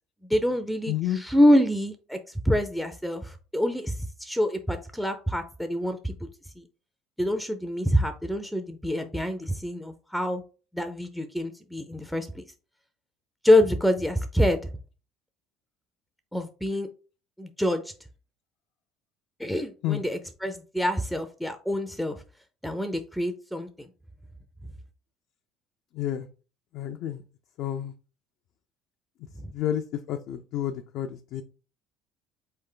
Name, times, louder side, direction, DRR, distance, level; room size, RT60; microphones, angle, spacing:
voice 1, 0.3-6.1 6.6-6.7 7.2-10.4 10.7-12.4 13.4-14.6 16.3-16.9 17.4-17.9 19.4-22.2 22.6-23.9 29.4-29.5, left 1 dB, ahead, 7 dB, 0.4 m, -26 dB
voice 2, 0.9-1.2 19.8-20.0 25.9-26.3 26.7-27.2 27.6-27.9 29.5-31.4, left 11 dB, 65° left, 5 dB, 0.4 m, -30 dB
3.8 x 3.3 x 3.7 m, 0.36 s
cardioid pair, 110°, 0 cm